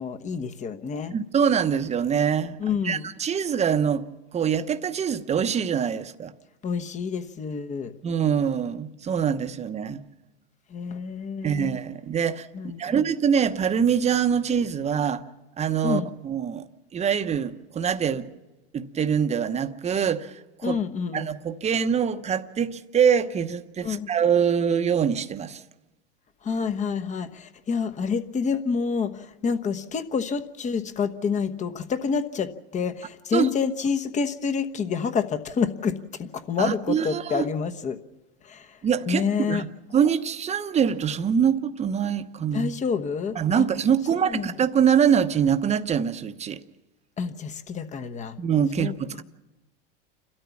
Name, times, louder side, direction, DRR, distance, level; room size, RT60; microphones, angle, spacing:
voice 1, 0.0-1.1 2.6-3.1 6.6-7.9 10.7-11.7 12.5-13.0 15.8-16.1 20.6-21.2 23.8-24.1 26.4-38.0 38.4-38.8 39.1-39.6 42.5-43.6 44.1-44.5 47.2-48.4 48.8-49.2, left 5 dB, 25° left, 1.1 m, -28 dB
voice 2, 1.1-2.6 2.8-4.1 4.3-6.3 8.0-10.0 11.4-12.5 12.8-15.2 15.6-16.7 16.9-18.3 18.7-20.8 21.1-25.6 33.3-33.5 36.6-37.5 38.8-39.7 39.9-42.7 43.3-46.6 48.4-49.2, right 7 dB, 20° right, 1.0 m, -24 dB
29.5 x 13.5 x 7.2 m
hypercardioid pair, 115°, 30 cm